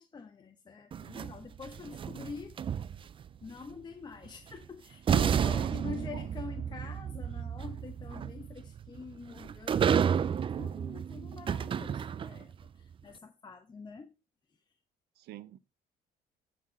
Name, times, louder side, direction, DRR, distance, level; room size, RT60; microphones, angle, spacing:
voice 1, 0.0-2.6 3.4-14.1, left 5 dB, 25° left, 0.9 m, -45 dB
sound 1, 0.9-3.3 4.5-4.6 5.1-12.5, right 8 dB, 30° right, 0.4 m, -31 dB
voice 2, 5.5-6.3 15.2-15.6, right 12 dB, 75° right, 0.7 m, -45 dB
13.5 x 4.5 x 4.1 m
cardioid pair, 110°, 17 cm